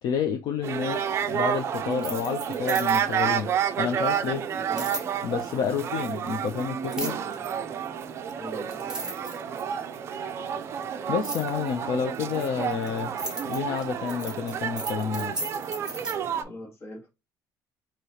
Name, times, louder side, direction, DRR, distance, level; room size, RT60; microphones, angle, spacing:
voice 1, 0.0-3.5 3.8-4.4 5.2-7.2 11.1-15.4, left 7 dB, 60° left, 0.6 m, -30 dB
sound 1, 0.6-16.4, right 8 dB, 40° right, 0.5 m, -30 dB
sound 2, 1.9-3.2 4.8-5.1 6.9-7.3 8.3-8.4 8.7-9.8 11.2-11.5 12.3-16.1, right 2 dB, 10° right, 1.1 m, -35 dB
sound 3, 3.0-16.6, left 1 dB, 20° left, 1.2 m, -51 dB
voice 2, 8.3-9.2 16.4-17.1, left 1 dB, 35° left, 1.8 m, -42 dB
4.8 x 3.0 x 2.8 m
cardioid pair, 170°, 7 cm